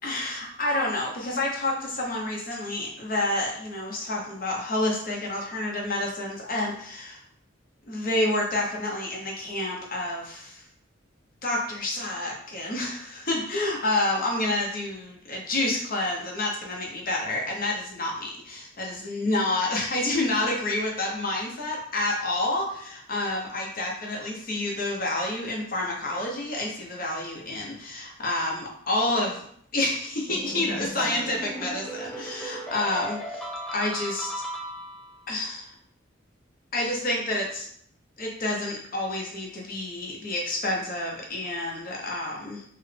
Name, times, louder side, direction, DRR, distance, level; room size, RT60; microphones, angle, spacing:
voice 1, 0.0-7.2 7.9-10.6 11.4-29.4 29.7-33.4 33.7-34.3 35.3-35.7 36.7-37.7 38.2-42.6, left 2 dB, 45° left, -1 dB, 0.9 m, -29 dB
sound 1, 30.3-35.2, right 1 dB, 5° left, 0.4 m, -36 dB
4.3 x 2.2 x 3.3 m, 0.65 s
head